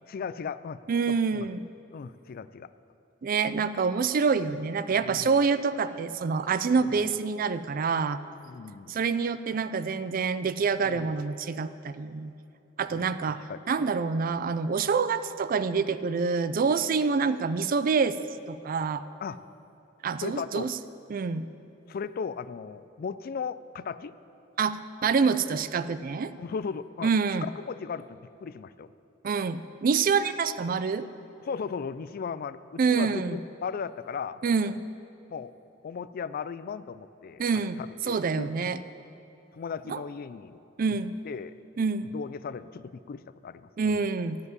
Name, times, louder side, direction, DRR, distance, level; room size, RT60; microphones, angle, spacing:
voice 1, 0.1-0.8 1.1-1.5 1.9-2.7 5.0-5.4 6.8-7.1 8.5-9.0 10.8-11.1 12.9-13.1 13.5-13.6 19.2-19.4 20.2-20.7 21.9-24.1 26.4-27.1 27.4-28.9 31.4-34.4 35.3-35.5 35.8-38.7 39.5-40.6 40.9-41.0 41.2-41.5 42.0-44.0, left 6 dB, 50° left, 15 dB, 0.3 m, -37 dB
voice 2, 0.9-1.6 3.2-8.2 8.9-12.3 12.8-13.4 13.7-18.2 18.5-19.0 20.0-20.7 21.1-21.5 24.6-26.3 27.0-27.4 29.2-31.1 32.8-33.4 34.4-34.8 37.4-37.8 38.1-38.8 39.9-40.0 40.8-41.2 41.8-42.1 43.8-44.4, right 5 dB, 45° right, 13 dB, 0.4 m, -26 dB
14.0 x 5.3 x 9.5 m, 2.8 s
head